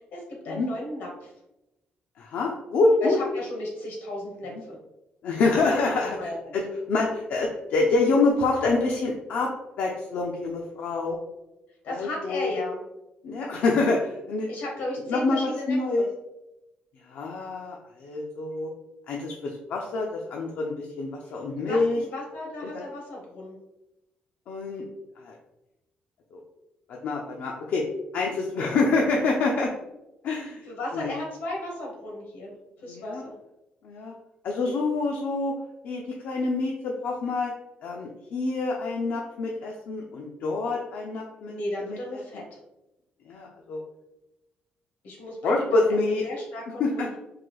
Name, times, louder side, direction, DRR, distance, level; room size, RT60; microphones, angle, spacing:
voice 1, 0.1-1.3 3.0-4.8 5.5-6.6 11.8-12.8 14.5-16.1 21.6-23.6 30.7-33.3 41.5-42.6 45.0-47.2, left 1 dB, 85° left, -2 dB, 1.3 m, -35 dB
voice 2, 2.2-3.2 4.5-4.6 5.2-6.2 6.5-6.6 6.9-9.5 9.8-11.2 11.9-12.5 13.2-14.5 15.1-16.1 17.1-18.7 19.1-22.0 22.6-22.8 24.5-24.8 25.2-25.3 26.3-26.4 27.0-27.8 28.1-29.7 30.2-30.6 30.9-31.2 32.9-33.2 33.8-34.1 34.4-35.5 35.8-37.5 37.8-41.5 41.8-42.0 42.3-42.4 43.3-43.8 45.4-46.3 46.8-47.2, left 3 dB, 70° left, -1 dB, 0.5 m, -26 dB
3.8 x 2.5 x 3.1 m, 0.95 s
cardioid pair, 135°, 3 cm